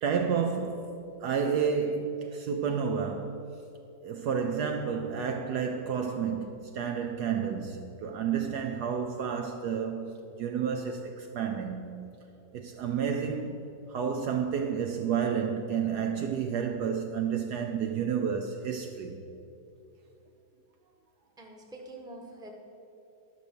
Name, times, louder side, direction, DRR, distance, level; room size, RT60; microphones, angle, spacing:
voice 1, 0.0-3.4 4.0-12.1 12.5-19.2, right 6 dB, 70° right, 1.1 m, -31 dB
voice 2, 21.4-22.5, right 2 dB, 5° right, 1.0 m, -45 dB
12.0 x 6.4 x 6.8 m
omnidirectional pair, 2.1 m